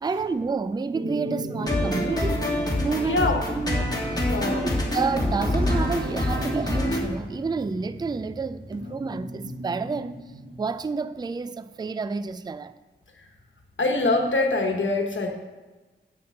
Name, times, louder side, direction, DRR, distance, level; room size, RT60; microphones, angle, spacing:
voice 1, 0.0-2.5 2.8-3.3 3.6-4.2 4.9-10.2 10.6-12.7, right 4 dB, 20° right, 0.3 m, -29 dB
sound 1, 0.9-7.8 8.7-10.5, equal, 70° right, 1.8 m, -38 dB
Motorcycle, 1.4-11.4, right 1 dB, 50° right, 1.7 m, -40 dB
sound 2, 1.6-7.0, left 1 dB, 20° left, 1.8 m, -26 dB
voice 2, 3.0-3.4 4.3-4.7 13.2-13.3 13.8-15.3, left 2 dB, 75° left, 1.2 m, -24 dB
8.4 x 6.1 x 7.5 m
wide cardioid pair, 95°, 20 cm